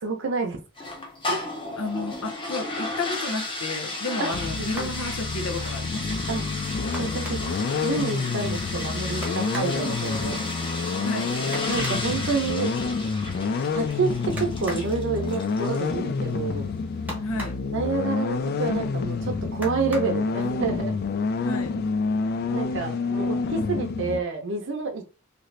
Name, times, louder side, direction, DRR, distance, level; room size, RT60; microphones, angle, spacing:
voice 1, 0.0-0.6 1.3-1.4 4.2-4.3 4.6-4.9 6.3-6.4 7.0-7.4 7.8-10.4 10.8-11.0 11.7-12.7 13.7-16.7 17.7-21.0 22.5-25.1, right 4 dB, 65° right, 0.6 m, -28 dB
sound 1, 0.8-16.0, left 2 dB, 25° left, 0.7 m, -34 dB
voice 2, 1.8-6.1 9.2-9.7 11.0-11.3 17.2-17.6 21.4-21.7, left 3 dB, 85° left, 0.6 m, -32 dB
sound 2, 4.3-24.2, left 4 dB, 50° left, 0.3 m, -28 dB
sound 3, 4.8-5.1 6.9-7.6 9.2-9.8 11.5-12.1 14.4-14.9 17.1-17.7 19.6-20.2 21.3-21.4 21.9-22.1, right 1 dB, 10° right, 0.9 m, -37 dB
2.8 x 2.5 x 3.2 m
head